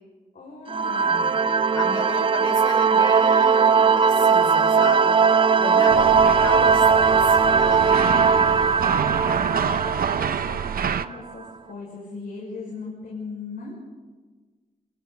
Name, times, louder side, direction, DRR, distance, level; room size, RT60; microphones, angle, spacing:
voice 1, 0.3-1.4 5.7-6.1 9.1-13.8, left 3 dB, 80° left, -4 dB, 6.0 m, -39 dB
sound 1, 0.7-11.1, right 5 dB, 35° right, 0.6 m, -19 dB
voice 2, 1.7-5.1 5.6-8.8, left 2 dB, 30° left, 3 dB, 4.6 m, -34 dB
sound 2, 5.9-11.1, right 7 dB, 75° right, 0.8 m, -27 dB
28.5 x 27.0 x 4.1 m, 1.4 s
wide cardioid pair, 135°, 15 cm